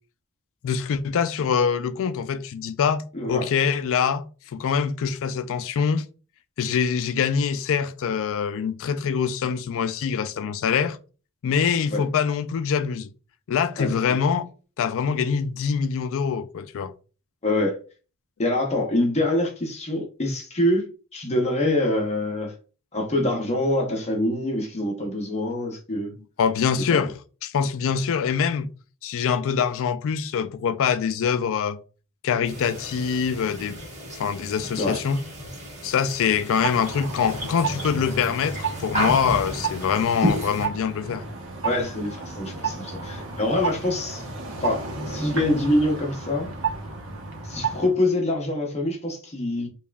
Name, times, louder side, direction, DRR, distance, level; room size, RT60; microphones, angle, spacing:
voice 1, 0.6-3.0 3.3-4.2 4.5-6.0 6.6-11.0 11.4-13.1 13.5-14.5 14.8-16.9 26.4-27.1 27.4-28.7 29.0-31.8 32.2-33.8 34.1-35.2 35.8-41.2, left 6 dB, 60° left, 0.4 m, -24 dB
voice 2, 3.1-3.5 11.9-12.0 13.8-13.9 17.4-17.8 18.4-22.5 22.9-26.1 26.9-27.0 34.8-35.0 41.6-44.3 44.6-46.5 47.4-49.7, left 1 dB, 30° left, 0.7 m, -25 dB
sound 1, 32.4-40.7, equal, 30° right, 1.2 m, -32 dB
sound 2, 36.6-47.9, right 4 dB, 60° right, 0.9 m, -32 dB
5.3 x 2.4 x 2.3 m
head